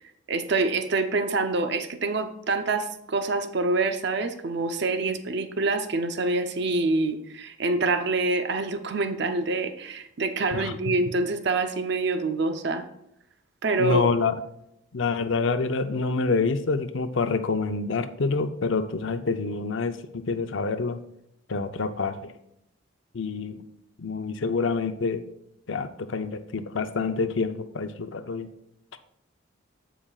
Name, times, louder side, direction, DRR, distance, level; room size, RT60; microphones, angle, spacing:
voice 1, 0.0-12.9 13.6-14.1, right 3 dB, 60° right, 9 dB, 0.7 m, -26 dB
voice 2, 13.8-14.3 14.9-21.0 21.5-22.3 23.1-23.6 24.0-25.2 25.7-28.5, left 4 dB, 75° left, 10 dB, 0.6 m, -27 dB
14.5 x 5.0 x 2.4 m, 0.81 s
head